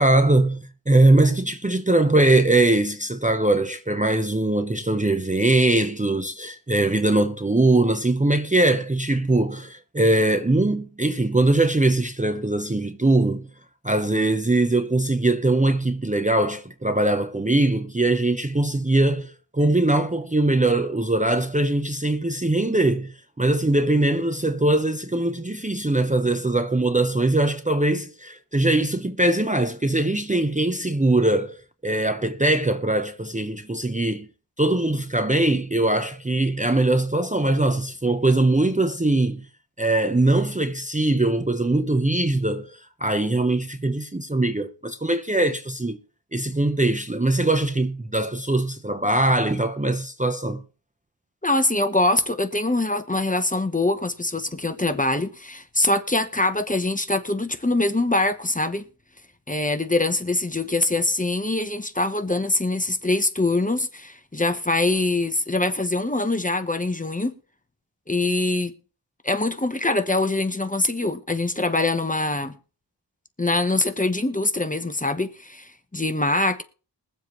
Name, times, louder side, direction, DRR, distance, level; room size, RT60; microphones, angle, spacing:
voice 1, 0.0-13.5 13.8-34.3 34.6-39.5 39.8-46.0 46.3-50.6, right 2 dB, 15° right, 0.7 m, -21 dB
voice 2, 51.4-58.9 59.5-67.3 68.1-68.7 69.2-72.6 73.4-76.6, left 2 dB, 20° left, 0.9 m, -23 dB
22.0 x 7.4 x 3.1 m
wide cardioid pair, 75°, 44 cm